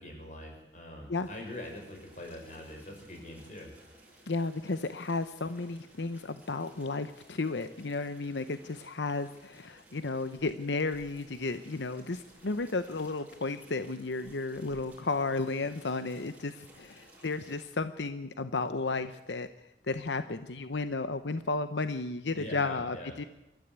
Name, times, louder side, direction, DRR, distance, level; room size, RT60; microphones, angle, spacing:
voice 1, 0.0-3.7 22.3-23.2, left 1 dB, 45° left, 2 dB, 6.2 m, -43 dB
sound 1, 1.1-17.7, right 1 dB, 10° right, 7.3 m, -58 dB
voice 2, 4.3-19.5 19.9-23.2, left 3 dB, 90° left, 11 dB, 0.9 m, -33 dB
27.5 x 13.5 x 8.2 m, 0.92 s
head